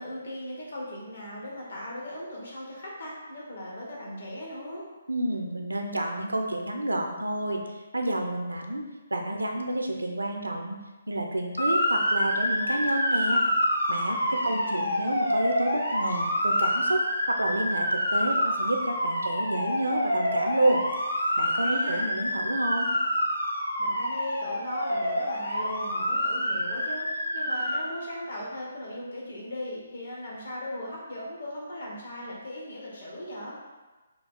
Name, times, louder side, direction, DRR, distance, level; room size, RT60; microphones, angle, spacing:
voice 1, 0.0-4.8 14.1-15.0 21.6-22.0 23.8-33.6, left 1 dB, 65° left, -4 dB, 1.4 m, -38 dB
voice 2, 5.1-10.8 11.1-13.4 13.9-20.8 21.4-22.9, right 1 dB, 85° right, 3 dB, 0.5 m, -29 dB
Motor vehicle (road) / Siren, 11.6-27.8, equal, 90° left, 0.9 m, -27 dB
3.8 x 2.4 x 3.6 m, 1.2 s
figure-of-eight pair, 140°, 0 cm